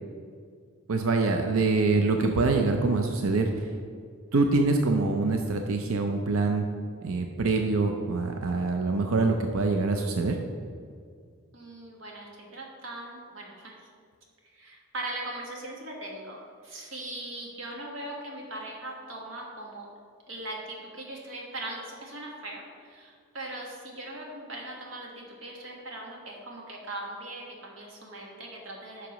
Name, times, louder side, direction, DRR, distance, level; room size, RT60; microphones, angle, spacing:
voice 1, 0.9-3.7 4.3-6.7 7.0-10.4, right 3 dB, 85° right, 4 dB, 0.6 m, -25 dB
voice 2, 11.5-13.8 14.5-19.9 20.3-29.1, right 1 dB, 65° right, -1 dB, 1.5 m, -40 dB
9.9 x 5.9 x 3.1 m, 2.1 s
head